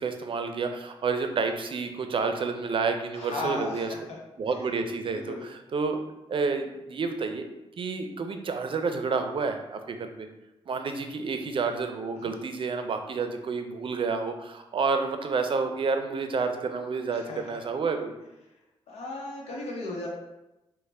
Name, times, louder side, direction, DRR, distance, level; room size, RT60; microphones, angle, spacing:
voice 1, 0.0-3.9 4.4-6.0 6.3-7.5 7.8-10.3 10.7-18.2, right 4 dB, 55° right, 6 dB, 0.5 m, -29 dB
voice 2, 3.1-4.2 5.1-5.5 12.1-12.3 17.1-17.6 18.9-20.1, left 2 dB, 85° left, -2 dB, 0.8 m, -36 dB
3.2 x 2.2 x 4.1 m, 0.95 s
cardioid pair, 60°, 11 cm